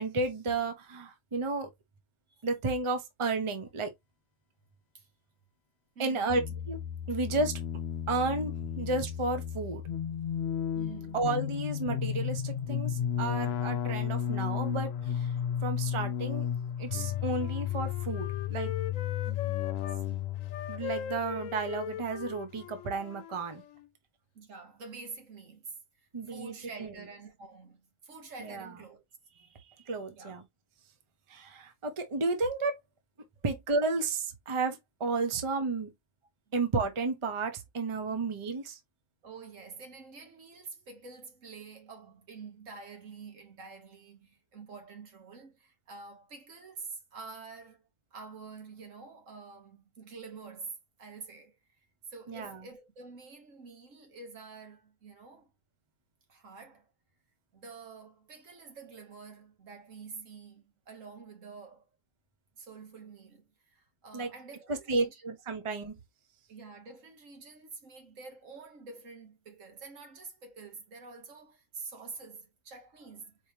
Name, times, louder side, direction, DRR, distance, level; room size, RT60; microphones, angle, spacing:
voice 1, 0.0-1.7 2.4-3.9 6.0-6.4 6.7-6.8 7.1-7.5 8.1-9.8 11.1-15.3 15.6-16.5 16.8-18.7 20.7-23.6 26.1-26.9 28.4-28.7 29.9-30.4 31.3-32.8 33.4-35.9 36.5-38.8 52.3-52.6 64.1-64.3 64.7-66.0, right 3 dB, 30° right, 0.8 m, -32 dB
voice 2, 5.9-6.4 7.1-7.2 10.7-11.2 19.2-19.6 24.3-25.7 26.3-29.0 30.1-30.4 33.4-33.5 39.2-51.6 52.1-55.5 56.3-56.9 57.5-61.8 62.6-65.2 66.5-73.4, right 4 dB, 75° right, 1.6 m, -47 dB
sound 1, 6.3-22.3, left 9 dB, 65° left, 0.8 m, -33 dB
Wind instrument woodwind instrument, 16.9-20.0 20.4-23.9, left 10 dB, 90° left, 1.0 m, -41 dB
4.6 x 3.3 x 2.7 m
omnidirectional pair, 1.3 m